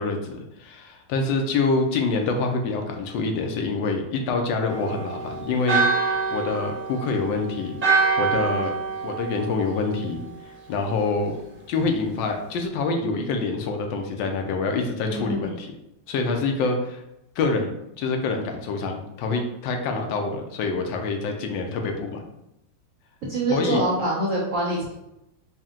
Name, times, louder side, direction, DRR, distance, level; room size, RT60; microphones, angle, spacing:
voice 1, 0.0-8.7 9.0-10.2 10.7-11.4 11.7-15.7 16.1-17.0 17.4-22.2 23.5-23.8, left 3 dB, 80° left, 4 dB, 1.3 m, -26 dB
Church bell, 4.7-10.4, right 4 dB, 30° right, 0.8 m, -26 dB
voice 2, 15.1-15.6 23.3-25.0, right 2 dB, 60° right, -4 dB, 0.8 m, -25 dB
4.3 x 2.1 x 3.6 m, 0.86 s
omnidirectional pair, 2.1 m